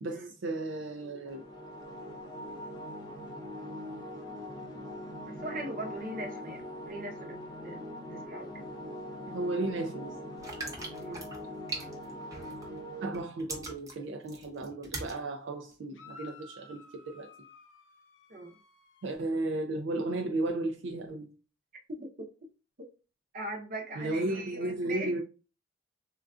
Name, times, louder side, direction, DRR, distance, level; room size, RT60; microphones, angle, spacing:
voice 1, 0.0-1.4 9.3-10.2 13.0-17.3 19.0-21.3 24.0-25.2, right 2 dB, 75° right, 0.4 m, -34 dB
sound 1, 1.2-13.1, left 1 dB, 25° left, 0.6 m, -42 dB
voice 2, 5.3-7.4 7.6-8.6 11.0-11.3 18.3-18.6 22.0-22.1 23.3-25.2, right 1 dB, 50° right, 0.7 m, -40 dB
sound 2, 10.4-12.8 13.1-15.2 15.7-15.8, right 2 dB, 20° right, 0.7 m, -40 dB
sound 3, 15.9-19.2, left 4 dB, 90° left, 0.6 m, -53 dB
3.7 x 2.3 x 2.4 m
head